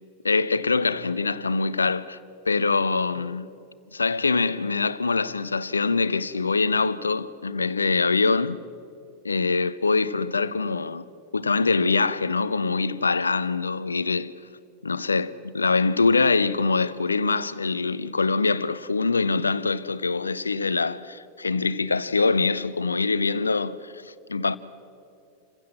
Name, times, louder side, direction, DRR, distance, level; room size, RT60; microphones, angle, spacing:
voice 1, 0.2-2.2 2.5-3.5 3.9-8.6 9.2-11.1 11.3-14.3 14.8-24.6, left 4 dB, 75° left, 0.6 m, -24 dB
27.5 x 16.0 x 7.6 m
figure-of-eight pair, 90°, 0 cm